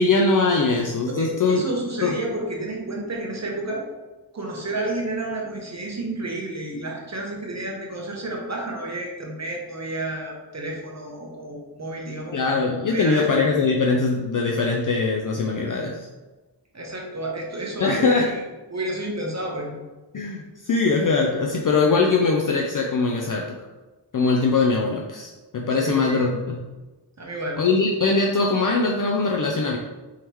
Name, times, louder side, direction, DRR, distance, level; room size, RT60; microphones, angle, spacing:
voice 1, 0.0-1.7 2.0-2.1 12.3-16.0 17.8-18.3 20.1-23.5 24.1-26.6 27.6-29.8, left 3 dB, 50° left, 1 dB, 0.5 m, -21 dB
voice 2, 1.1-3.9 4.3-12.4 12.9-13.3 16.7-18.4 18.7-19.8 25.8-26.3 27.2-27.6, right 1 dB, 40° right, 0 dB, 0.9 m, -31 dB
4.6 x 3.6 x 3.0 m, 1.2 s
wide cardioid pair, 85°, 43 cm